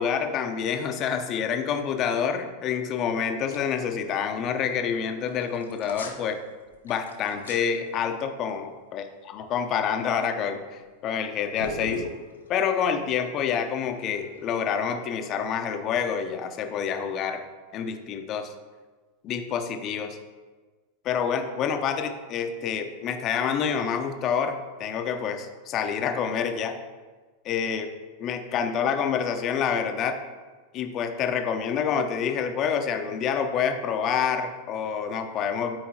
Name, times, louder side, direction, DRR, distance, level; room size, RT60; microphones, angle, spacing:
voice 1, 0.0-6.4 6.8-12.0 12.5-17.4 17.7-18.5 19.2-20.2 21.0-26.8 27.4-27.9 28.2-30.2 30.7-35.8, left 7 dB, 35° left, 6 dB, 0.8 m, -27 dB
sound 1, 3.5-3.8 4.1-4.2 5.3-6.3 6.7-7.6 10.3-10.6 11.5-14.4, left 2 dB, 75° left, 1.0 m, -38 dB
12.0 x 4.7 x 2.9 m, 1.3 s
figure-of-eight pair, 90°, 0 cm